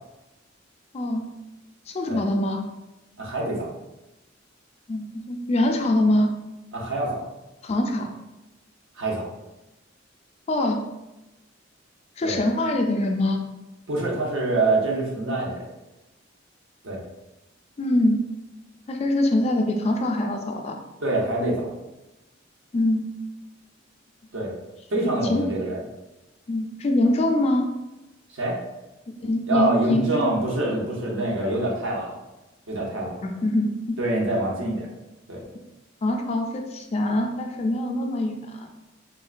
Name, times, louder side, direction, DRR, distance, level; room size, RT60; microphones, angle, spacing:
voice 1, 1.9-2.6 4.9-6.3 7.6-8.1 10.5-10.8 12.2-13.4 17.8-18.2 18.9-20.8 21.4-21.6 22.7-23.1 25.0-25.5 26.5-27.7 29.1-30.3 33.2-34.0 36.0-38.7, left 1 dB, 35° left, 3 dB, 0.3 m, -24 dB
voice 2, 3.2-3.7 6.7-7.2 9.0-9.3 12.2-12.4 13.9-15.7 16.8-17.0 21.0-21.7 24.3-24.5 24.9-25.8 28.3-28.6 29.5-32.1 32.7-33.2 34.0-34.9 35.3-35.4, right 2 dB, 85° right, -2 dB, 0.8 m, -25 dB
3.6 x 2.2 x 2.4 m, 0.99 s
head